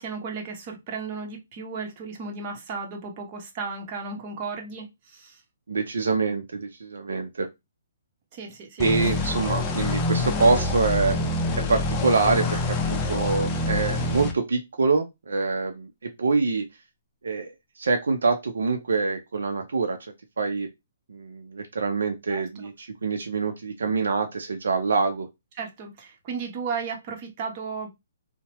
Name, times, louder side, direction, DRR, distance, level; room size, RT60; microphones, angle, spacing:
voice 1, 0.0-5.4 8.3-8.8 22.3-22.4 25.6-27.9, right 5 dB, 40° right, 2 dB, 0.9 m, -34 dB
voice 2, 5.7-7.5 8.8-11.2 11.7-16.7 17.2-17.5 17.8-20.0 20.4-20.7 21.1-25.3, right 4 dB, 80° right, 5 dB, 0.5 m, -25 dB
sound 1, 8.8-14.3, left 2 dB, 20° left, 0.5 m, -26 dB
2.8 x 2.1 x 2.9 m, 0.21 s
hypercardioid pair, 140°, 0 cm